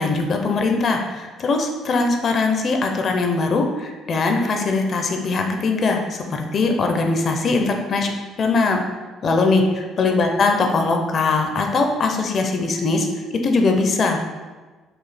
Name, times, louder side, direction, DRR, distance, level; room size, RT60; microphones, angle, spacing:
voice 1, 0.0-8.1 8.4-8.8 9.2-13.1 13.4-14.2, left 3 dB, 45° left, 3 dB, 0.6 m, -21 dB
4.8 x 2.4 x 4.2 m, 1.3 s
cardioid pair, 105°, 0 cm